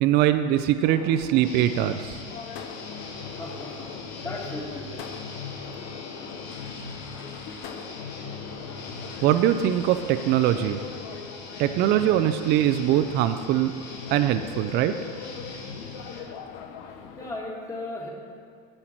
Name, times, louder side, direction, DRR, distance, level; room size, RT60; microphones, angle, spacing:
voice 1, 0.0-2.2 9.2-10.8 11.6-13.7 14.1-14.9, right 12 dB, 50° right, 9 dB, 0.5 m, -22 dB
sound 1, 0.8-17.4, left 6 dB, 65° left, 0.8 m, -41 dB
sound 2, 1.4-16.2, left 3 dB, 80° left, 1.9 m, -41 dB
voice 2, 3.4-3.9 4.2-4.9 17.2-18.1, left 2 dB, 15° left, -3 dB, 2.2 m, -35 dB
9.7 x 7.9 x 4.5 m, 2.3 s
supercardioid pair, 105°, 21 cm